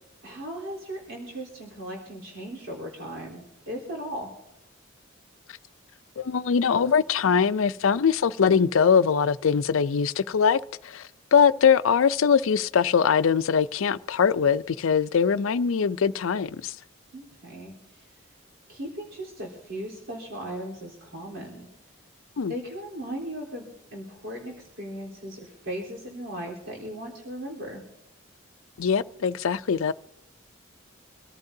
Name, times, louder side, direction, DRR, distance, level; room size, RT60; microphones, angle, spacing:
voice 1, 0.2-4.3 17.1-18.2 18.7-21.7 22.5-23.7 23.9-27.8, right 1 dB, 70° right, 3.7 m, -37 dB
voice 2, 6.2-16.7 22.4-22.5 28.8-29.9, left 6 dB, 75° left, 0.5 m, -22 dB
25.5 x 14.5 x 2.7 m
head